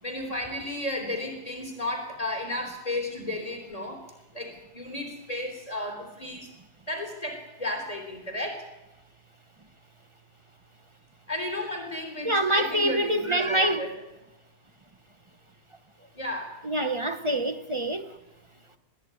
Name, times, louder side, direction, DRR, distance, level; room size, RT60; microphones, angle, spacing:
voice 1, 0.0-4.0 4.3-6.5 6.9-8.6 11.3-13.9 16.1-16.5, left 1 dB, 35° left, 3.9 m, -33 dB
voice 2, 12.2-13.9 16.6-18.1, right 1 dB, 30° right, 1.1 m, -25 dB
21.0 x 14.5 x 9.7 m
omnidirectional pair, 1.1 m